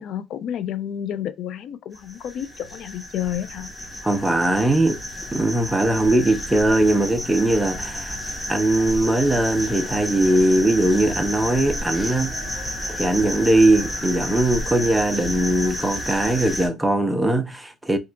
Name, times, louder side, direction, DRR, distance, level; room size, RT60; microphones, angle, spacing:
voice 1, 0.0-3.7, left 10 dB, 65° left, 0.4 m, -30 dB
sound 1, 1.9-16.7, equal, 10° left, 0.9 m, -31 dB
voice 2, 4.0-5.0 5.3-8.2 8.5-12.4 12.9-18.0, right 1 dB, 10° right, 0.6 m, -20 dB
2.8 x 2.4 x 3.3 m
cardioid pair, 100°, 0 cm